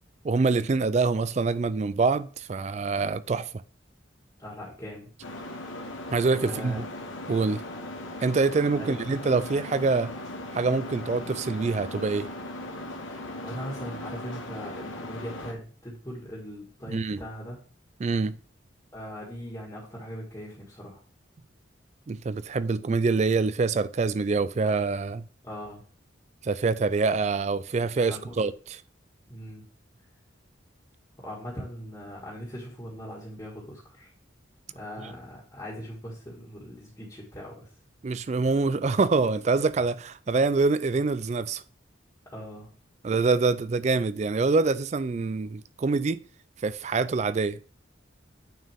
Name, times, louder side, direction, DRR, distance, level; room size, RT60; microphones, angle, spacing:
voice 1, 0.2-3.5 6.1-6.8 7.3-7.6 8.2-10.1 10.5-12.3 16.9-17.2 18.0-18.4 22.1-25.2 26.4-28.5 38.0-41.6 43.0-46.2 46.6-47.6, right 4 dB, 35° right, 0.3 m, -25 dB
voice 2, 4.4-5.1 6.4-6.9 8.8-9.0 13.1-17.6 18.9-21.0 25.4-25.8 28.0-28.5 29.3-29.6 31.2-34.1 34.7-37.7 42.3-42.7, equal, 20° left, 1.8 m, -40 dB
sound 1, 5.2-15.5, left 1 dB, 80° left, 1.2 m, -38 dB
9.2 x 4.5 x 3.5 m
head